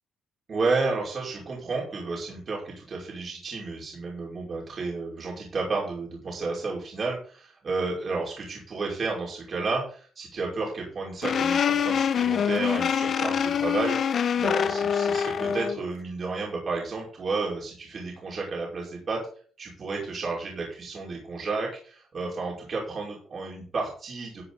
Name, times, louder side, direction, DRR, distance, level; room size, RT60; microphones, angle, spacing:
voice 1, 0.5-19.2 19.6-24.4, right 3 dB, 45° right, -3 dB, 5.4 m, -32 dB
sound 1, 11.2-15.8, left 7 dB, 55° left, 1.1 m, -25 dB
14.5 x 8.6 x 4.2 m, 0.44 s
cardioid pair, 90°, 0 cm